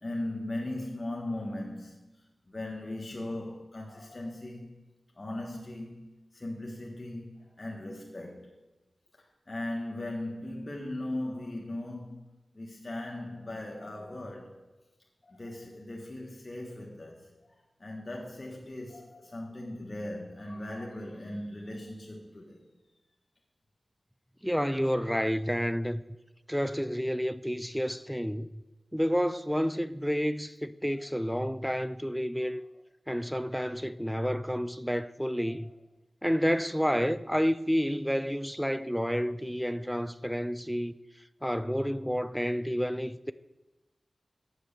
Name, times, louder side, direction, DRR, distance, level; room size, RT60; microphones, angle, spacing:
voice 1, 0.0-2.0 2.5-4.7 5.1-6.1 6.3-8.5 9.5-12.2 12.5-14.6 15.2-17.3 17.8-22.6 30.9-31.1 32.5-32.6 35.3-35.7, left 1 dB, 40° left, 1.5 m, -38 dB
voice 2, 24.4-26.0 26.5-28.5 28.9-32.6 33.1-35.7 36.2-40.9 41.4-43.3, equal, ahead, 0.4 m, -30 dB
8.0 x 6.7 x 6.7 m
wide cardioid pair, 60°, 0 cm